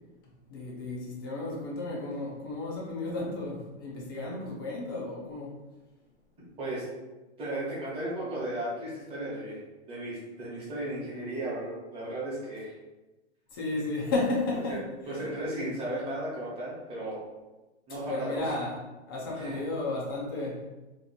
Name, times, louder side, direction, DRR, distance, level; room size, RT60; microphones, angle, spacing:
voice 1, 0.5-5.6 13.5-14.8 15.1-15.2 18.1-18.8 19.1-20.6, left 2 dB, 20° left, -3 dB, 0.4 m, -33 dB
voice 2, 7.4-9.6 9.9-12.7 14.7-17.2 17.9-18.4 19.3-19.6, right 1 dB, 15° right, -7 dB, 1.1 m, -35 dB
3.0 x 2.5 x 3.9 m, 1.1 s
supercardioid pair, 165°, 35 cm